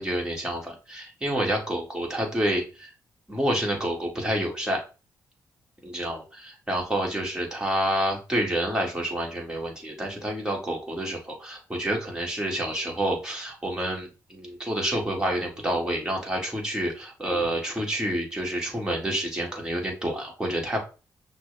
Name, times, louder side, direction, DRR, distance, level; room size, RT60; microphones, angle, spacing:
voice 1, 0.0-2.9 3.3-4.8 5.8-20.8, right 1 dB, 10° right, -1 dB, 1.9 m, -28 dB
5.8 x 2.3 x 3.3 m, 0.32 s
cardioid pair, 75°, 7 cm